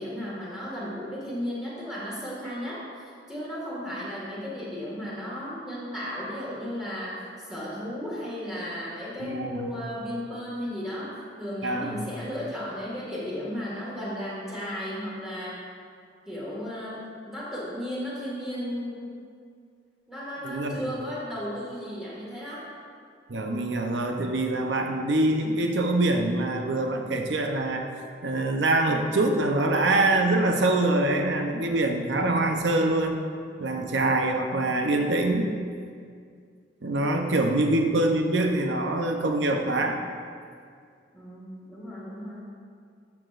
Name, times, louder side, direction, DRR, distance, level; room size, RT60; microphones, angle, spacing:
voice 1, 0.0-15.7 16.3-19.2 20.1-22.7 33.6-33.9 41.1-42.5, equal, 5° right, -8 dB, 1.8 m, -35 dB
voice 2, 9.2-9.7 11.6-12.0 20.4-20.9 23.3-27.9 28.2-33.2 33.6-35.5 36.8-40.0, right 2 dB, 80° right, 3 dB, 0.7 m, -24 dB
11.5 x 5.9 x 2.5 m, 2.2 s
head